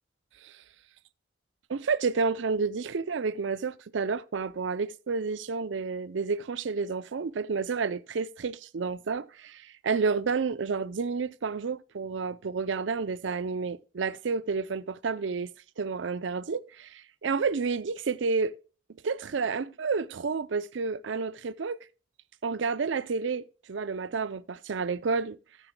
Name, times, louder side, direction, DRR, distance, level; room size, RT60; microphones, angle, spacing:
voice 1, 1.7-15.5 15.8-18.5 19.0-21.8 22.4-25.4, right 4 dB, 85° right, 0.5 m, -30 dB
14.0 x 9.1 x 2.2 m
head